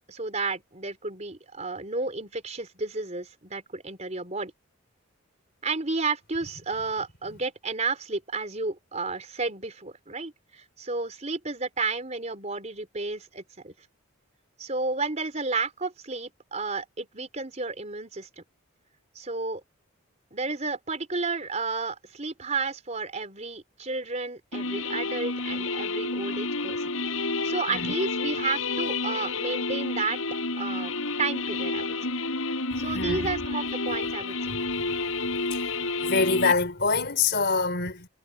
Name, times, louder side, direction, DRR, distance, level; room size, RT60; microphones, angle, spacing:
voice 1, 0.1-4.5 5.6-13.7 14.6-18.4 19.2-19.6 20.3-26.9 27.2-30.2 30.6-30.9 31.2-32.1 32.8-34.4, right 3 dB, 35° right, 4.1 m, -32 dB
sound 1, 24.5-36.5, left 3 dB, 80° left, 5.8 m, -30 dB
voice 2, 32.9-33.3 34.5-34.9 35.5-35.8 36.0-38.1, left 4 dB, 50° left, 4.5 m, -26 dB
head